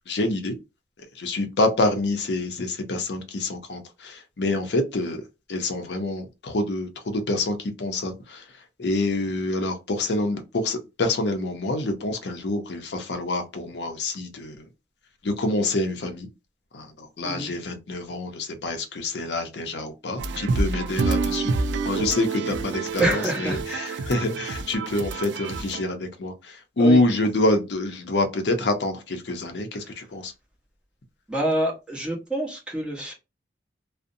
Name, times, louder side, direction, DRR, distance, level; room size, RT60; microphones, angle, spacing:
voice 1, 0.1-0.6 1.2-5.2 5.5-8.4 8.8-14.7 15.2-16.3 16.7-21.6 21.8-30.3, left 2 dB, 70° left, 0.6 m, -26 dB
sound 1, 20.2-25.8, right 4 dB, 80° right, 0.4 m, -28 dB
voice 2, 23.0-24.1 26.8-27.0 31.3-33.1, right 1 dB, 5° right, 0.9 m, -27 dB
2.6 x 2.1 x 2.5 m
head